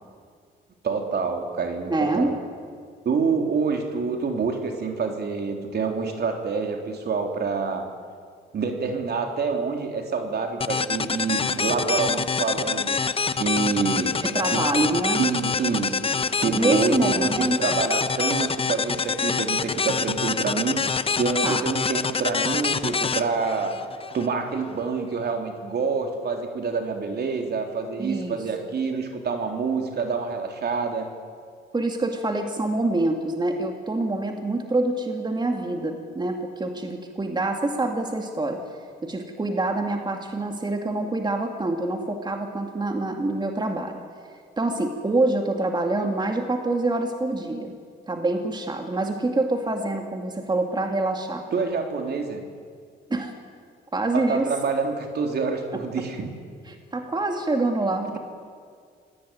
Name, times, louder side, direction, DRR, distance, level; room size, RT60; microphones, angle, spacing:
voice 1, 0.8-2.4 3.1-7.8 8.5-13.0 13.4-14.2 14.5-14.6 15.2-23.8 24.1-31.1 51.5-52.4 54.1-56.3 58.1-58.2, right 5 dB, 55° right, 4 dB, 3.6 m, -27 dB
voice 2, 1.9-2.3 14.2-15.2 16.5-17.6 21.4-21.6 28.0-28.4 31.7-38.6 39.0-44.0 44.6-47.7 48.1-51.4 53.1-53.3 53.9-54.5 56.7-58.2, right 2 dB, 20° right, 4 dB, 2.4 m, -26 dB
sound 1, 10.6-24.3, left 5 dB, 30° left, 0.9 m, -26 dB
25.0 x 18.0 x 9.4 m, 2.1 s
cardioid pair, 90°, 20 cm